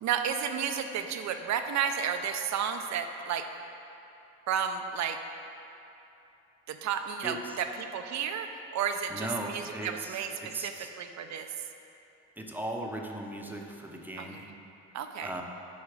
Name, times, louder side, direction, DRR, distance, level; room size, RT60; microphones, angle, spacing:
voice 1, 0.0-3.5 4.5-5.2 6.7-11.5 14.2-14.5 14.9-15.4, right 7 dB, 65° right, 7 dB, 0.6 m, -32 dB
voice 2, 9.1-10.9 12.4-14.4 15.2-15.4, right 1 dB, 5° right, 0 dB, 0.8 m, -38 dB
8.3 x 4.7 x 4.9 m, 2.8 s
cardioid pair, 90°, 30 cm